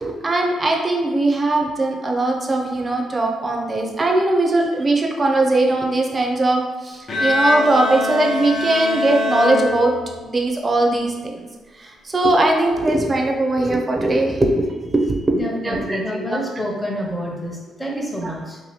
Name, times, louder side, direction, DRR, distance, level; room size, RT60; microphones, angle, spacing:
voice 1, 0.0-9.9 10.2-11.4 11.8-16.4 18.2-18.3, right 2 dB, 30° right, 1 dB, 0.5 m, -20 dB
Bowed string instrument, 7.1-10.4, left 2 dB, 45° left, 0.6 m, -23 dB
voice 2, 15.3-18.6, equal, 10° left, -2 dB, 0.8 m, -28 dB
2.8 x 2.6 x 3.1 m, 1.2 s
cardioid pair, 90°, 0 cm